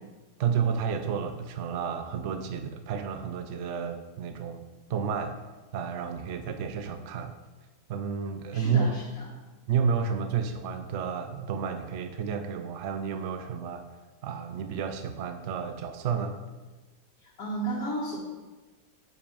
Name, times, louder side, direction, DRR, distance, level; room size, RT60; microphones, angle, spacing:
voice 1, 0.4-4.6 4.9-5.4 5.7-7.3 7.9-8.9 9.7-13.8 14.2-16.4, right 6 dB, 70° right, 8 dB, 0.7 m, -31 dB
voice 2, 8.5-9.3 17.2-18.2, right 2 dB, 55° left, -6 dB, 2.0 m, -33 dB
9.6 x 5.4 x 5.3 m, 1.2 s
omnidirectional pair, 1.8 m